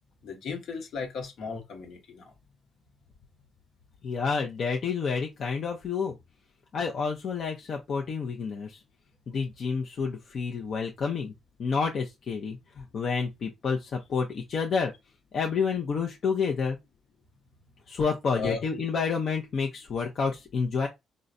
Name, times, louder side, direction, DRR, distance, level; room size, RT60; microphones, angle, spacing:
voice 1, 0.2-2.3 18.3-18.6, left 4 dB, 70° left, 1.0 m, -35 dB
voice 2, 4.0-6.1 6.7-8.8 9.3-11.3 11.6-14.9 15.3-16.8 17.9-20.9, left 5 dB, 55° left, 0.6 m, -29 dB
3.8 x 2.1 x 2.6 m
cardioid pair, 90°, 0 cm